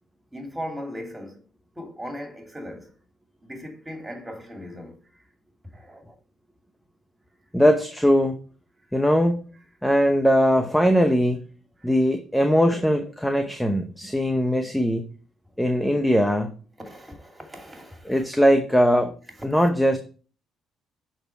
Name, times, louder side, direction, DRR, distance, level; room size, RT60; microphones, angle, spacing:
voice 1, 0.3-1.4 1.8-2.9 3.4-5.0 5.7-6.1 11.8-11.9 15.7-15.8 16.8-18.3, equal, 15° right, 2.6 m, -38 dB
voice 2, 7.5-8.4 8.9-9.4 9.8-11.4 11.8-15.0 15.6-16.5 18.0-19.1 19.4-20.0, equal, 5° left, 0.8 m, -20 dB
6.7 x 4.4 x 4.5 m
hypercardioid pair, 50°, 0 cm